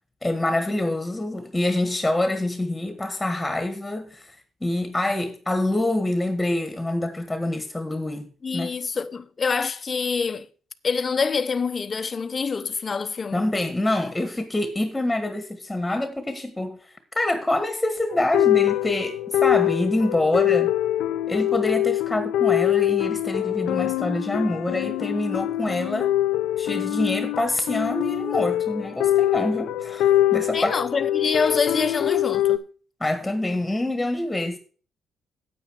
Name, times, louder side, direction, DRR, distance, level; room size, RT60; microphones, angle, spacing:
voice 1, 0.2-4.3 4.6-8.7 13.3-20.7 21.3-26.1 26.6-30.7 33.0-34.6, left 1 dB, 10° left, 1.6 m, -26 dB
voice 2, 8.4-10.5 10.8-13.5 30.5-32.6, left 5 dB, 35° left, 0.9 m, -26 dB
sound 1, 18.1-32.6, left 13 dB, 90° left, 0.6 m, -24 dB
9.3 x 8.8 x 4.7 m
cardioid pair, 90°, 0 cm